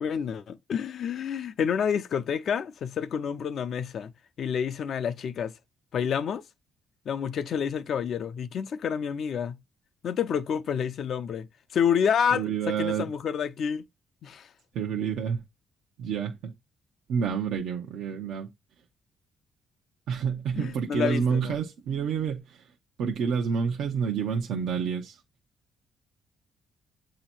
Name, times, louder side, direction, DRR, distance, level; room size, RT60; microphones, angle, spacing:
voice 1, 0.0-4.1 4.4-5.5 5.9-6.4 7.1-9.6 10.0-11.5 11.7-13.8 14.2-14.5 20.6-21.5, left 7 dB, 65° left, 0.5 m, -28 dB
voice 2, 12.3-13.1 14.7-15.4 16.0-16.5 17.1-18.5 20.1-22.7 23.0-25.2, right 6 dB, 80° right, 0.7 m, -28 dB
7.9 x 2.8 x 4.4 m
cardioid pair, 90°, 0 cm